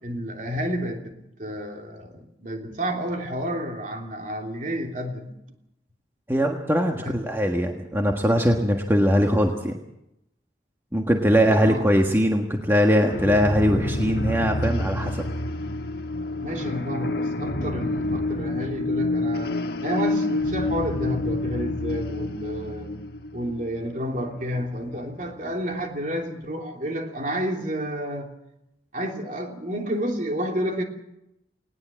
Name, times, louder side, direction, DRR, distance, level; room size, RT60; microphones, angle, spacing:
voice 1, 0.0-1.1 1.4-5.3 7.0-7.2 11.4-11.9 16.4-19.5 19.8-22.9 23.3-28.3 28.9-30.8, equal, 45° right, 2 dB, 3.2 m, -30 dB
voice 2, 6.3-9.8 10.9-15.2, equal, 15° right, 2 dB, 1.5 m, -21 dB
sound 1, 13.0-25.5, left 2 dB, 60° left, 1.4 m, -28 dB
19.5 x 18.5 x 7.6 m, 0.84 s
head